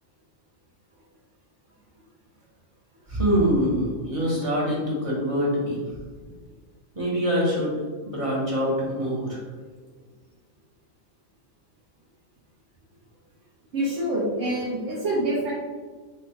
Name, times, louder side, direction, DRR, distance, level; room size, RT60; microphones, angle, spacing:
voice 1, 3.1-5.8 6.9-7.7 8.0-9.4, equal, 30° right, -5 dB, 0.9 m, -24 dB
voice 2, 13.7-15.5, right 1 dB, 65° right, -8 dB, 1.2 m, -26 dB
3.4 x 2.4 x 4.0 m, 1.5 s
omnidirectional pair, 1.4 m